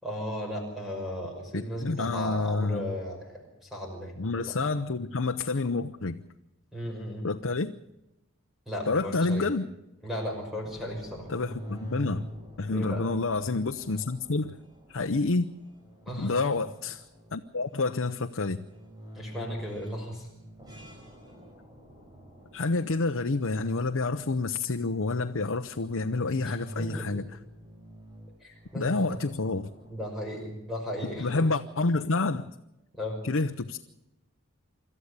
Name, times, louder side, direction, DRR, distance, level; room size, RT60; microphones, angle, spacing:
voice 1, 0.0-4.5 6.7-7.3 8.7-9.5 10.0-11.3 12.7-13.1 16.1-16.4 19.1-20.3 26.4-27.2 28.4-29.2 29.9-31.5 32.9-33.2, equal, ahead, 5.9 m, -36 dB
voice 2, 1.5-2.9 4.2-6.2 7.2-7.8 8.9-9.7 11.3-12.3 12.6-14.6 14.9-15.5 16.2-17.0 17.3-18.7 22.5-27.3 28.7-29.7 31.2-32.5 33.2-33.8, left 3 dB, 75° left, 0.8 m, -28 dB
sound 1, 10.6-29.9, equal, 20° right, 5.1 m, -46 dB
26.0 x 13.5 x 8.2 m
head